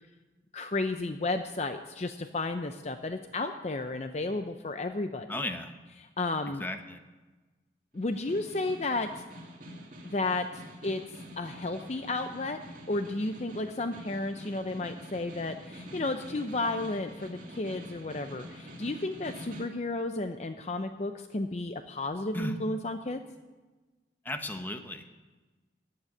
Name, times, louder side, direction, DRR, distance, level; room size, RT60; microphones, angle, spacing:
voice 1, 0.5-5.4 6.0-6.6 7.9-9.2 10.0-12.6 12.9-23.2, left 2 dB, 40° left, 8 dB, 0.6 m, -33 dB
voice 2, 5.3-5.7 6.6-7.0 22.3-22.6 24.2-25.0, left 1 dB, 10° left, 6 dB, 1.0 m, -35 dB
Snare drum, 7.9-19.8, equal, 45° right, 2.5 m, -46 dB
14.5 x 7.8 x 9.7 m, 1.2 s
head